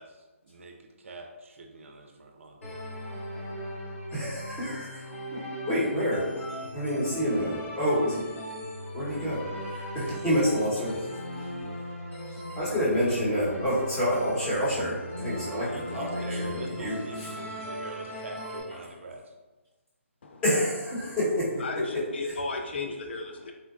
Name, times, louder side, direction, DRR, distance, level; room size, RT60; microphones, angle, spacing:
voice 1, 0.0-2.6 15.7-19.3, right 2 dB, 65° right, 2 dB, 0.4 m, -44 dB
sound 1, 2.6-18.6, equal, 70° left, 1.1 m, -38 dB
voice 2, 4.1-5.4 5.6-6.2 6.7-8.2 8.9-9.4 9.7-11.1 12.5-16.1 16.4-17.3 20.4-21.5, equal, 10° left, -10 dB, 1.0 m, -28 dB
voice 3, 21.6-23.5, left 3 dB, 50° left, 3 dB, 0.3 m, -33 dB
3.7 x 2.2 x 2.4 m, 1.2 s
hypercardioid pair, 160°, 7 cm